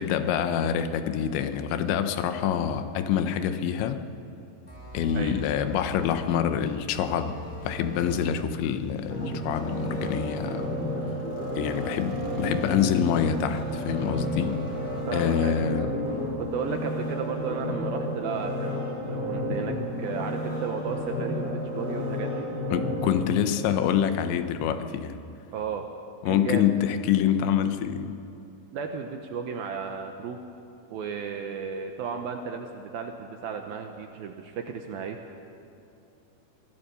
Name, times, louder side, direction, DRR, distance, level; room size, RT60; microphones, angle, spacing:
voice 1, 0.0-4.0 4.9-7.4 7.6-10.7 11.6-14.6 15.1-16.0 22.7-25.2 26.2-28.2, left 9 dB, 85° left, 9 dB, 3.2 m, -26 dB
sound 1, 4.7-6.1 6.9-8.4 9.4-10.8 11.6-13.1 13.8-15.2, equal, 5° left, 4.2 m, -43 dB
sound 2, 4.9-17.1, right 2 dB, 35° right, 3.2 m, -43 dB
sound 3, 9.1-24.2 24.6-24.7, left 1 dB, 60° left, 7.4 m, -32 dB
voice 2, 15.1-15.7 16.4-22.5 25.5-25.9 26.3-26.6 28.7-30.4 30.9-35.2, right 6 dB, 75° right, 4 dB, 2.3 m, -34 dB
24.0 x 15.5 x 6.8 m, 2.7 s
omnidirectional pair, 5.2 m